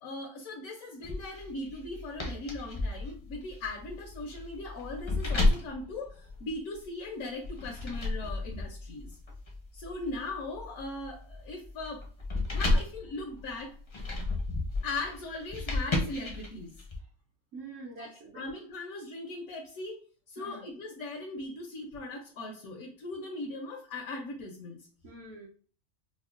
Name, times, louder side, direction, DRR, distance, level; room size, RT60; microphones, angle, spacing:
voice 1, 0.0-9.1 9.7-12.0 12.5-13.7 14.8-16.7 18.0-18.1 18.3-20.0 20.3-24.8, left 2 dB, 80° left, 1 dB, 1.1 m, -39 dB
sound 1, 1.0-6.9 7.4-17.0, left 2 dB, 35° left, 0.4 m, -33 dB
voice 2, 17.5-18.4 20.4-20.8 25.0-25.5, right 3 dB, 65° right, -2 dB, 1.0 m, -45 dB
5.3 x 2.1 x 2.4 m, 0.42 s
omnidirectional pair, 1.5 m